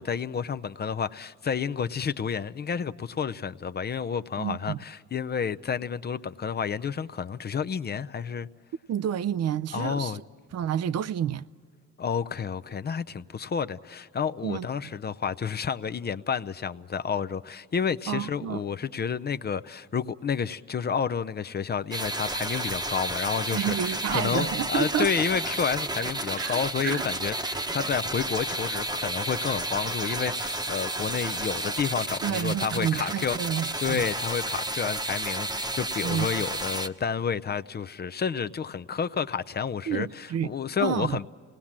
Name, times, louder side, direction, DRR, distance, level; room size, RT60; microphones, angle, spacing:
voice 1, 0.0-8.5 9.7-10.2 12.0-33.4 33.8-41.3, left 6 dB, 35° left, 0.5 m, -30 dB
voice 2, 4.4-4.8 8.9-10.1 10.5-11.4 14.4-14.7 18.1-18.6 23.5-25.1 26.4-27.0 32.2-34.0 36.0-36.3 39.9-40.5 40.8-41.2, right 9 dB, 55° right, 0.6 m, -29 dB
sound 1, 21.9-36.9, right 1 dB, 15° right, 1.0 m, -31 dB
27.5 x 19.0 x 7.4 m
cardioid pair, 90°, 30 cm